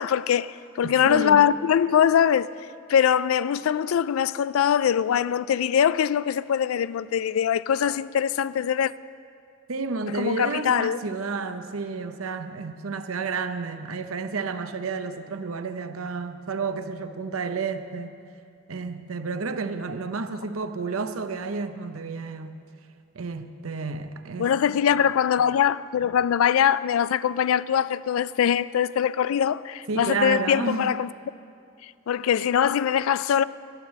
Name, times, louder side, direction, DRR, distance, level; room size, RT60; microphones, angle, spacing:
voice 1, 0.0-2.5 2.9-8.9 10.2-11.0 24.4-31.1 31.8-33.4, left 8 dB, 85° left, 0.3 m, -22 dB
voice 2, 0.8-1.4 9.7-18.2 18.7-22.6 23.1-24.5 29.9-30.9, right 4 dB, 90° right, 0.7 m, -31 dB
12.5 x 9.7 x 7.4 m
head